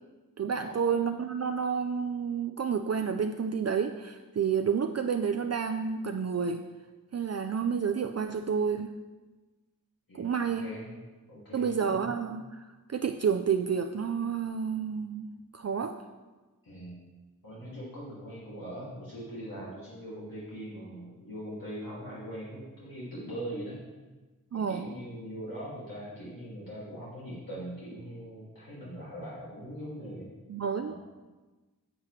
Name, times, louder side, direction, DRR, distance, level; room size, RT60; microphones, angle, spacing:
voice 1, 0.4-6.6 7.1-9.0 10.1-10.6 11.5-16.0 24.5-24.9 30.5-30.9, right 6 dB, 50° right, 6 dB, 0.4 m, -30 dB
voice 2, 10.5-10.9 11.3-12.1 16.6-17.0 17.4-23.8 24.5-30.3 30.8-30.9, equal, 75° left, -8 dB, 2.3 m, -41 dB
9.7 x 8.0 x 3.2 m, 1.2 s
wide cardioid pair, 60°, 34 cm